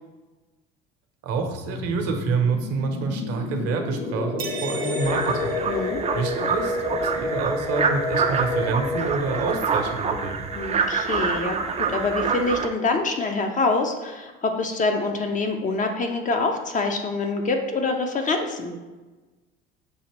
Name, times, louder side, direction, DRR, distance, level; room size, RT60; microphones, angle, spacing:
voice 1, 1.2-5.5 6.1-10.5, right 4 dB, 55° right, 4 dB, 0.8 m, -27 dB
sound 1, 1.4-11.8, left 3 dB, 80° left, 0.6 m, -30 dB
sound 2, 4.4-6.5, right 5 dB, 90° right, 0.5 m, -37 dB
sound 3, 5.0-12.7, right 5 dB, 20° right, 0.4 m, -27 dB
voice 2, 5.7-6.0 10.6-18.7, left 3 dB, 25° left, 4 dB, 0.5 m, -25 dB
6.2 x 2.8 x 3.0 m, 1.2 s
figure-of-eight pair, 60°, 30 cm